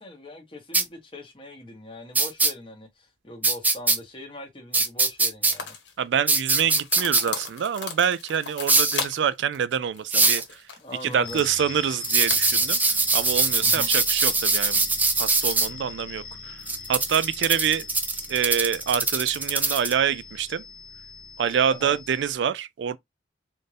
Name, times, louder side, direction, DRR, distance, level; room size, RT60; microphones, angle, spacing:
voice 1, 0.0-5.7 10.1-10.3 10.8-11.4 13.6-13.9 21.8-22.0, left 1 dB, 30° left, 1.2 m, -41 dB
sound 1, 0.7-0.8 2.1-2.5 3.4-4.0 4.7-5.5 6.3-7.2 8.7-9.0 10.1-10.4 12.0-15.7 16.7-19.9, right 3 dB, 10° right, 0.4 m, -22 dB
sound 2, 5.5-5.9 6.5-9.3 9.5-9.6 9.9-11.4 12.0-12.9, left 6 dB, 85° left, 1.2 m, -36 dB
voice 2, 6.0-10.4 11.0-12.8 13.1-14.8 15.2-16.6 16.9-17.9 18.3-20.6 21.4-23.0, right 8 dB, 80° right, 0.4 m, -26 dB
sound 3, 11.2-22.3, left 5 dB, 55° left, 0.8 m, -41 dB
4.2 x 2.6 x 3.3 m
head